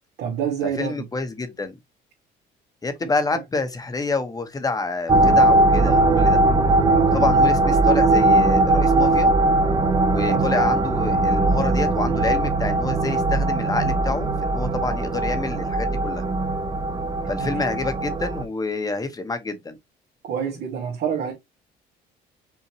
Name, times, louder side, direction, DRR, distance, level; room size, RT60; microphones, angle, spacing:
voice 1, 0.2-1.0 3.3-3.4 10.3-10.4 17.4-17.5 20.2-21.3, right 8 dB, 70° right, 1.6 m, -27 dB
voice 2, 0.8-1.7 2.8-6.4 7.1-9.3 10.1-16.2 17.3-19.8, left 3 dB, 20° left, 1.2 m, -28 dB
sound 1, 5.1-18.4, right 2 dB, 25° right, 0.8 m, -19 dB
5.6 x 2.8 x 2.9 m
cardioid pair, 110°, 17 cm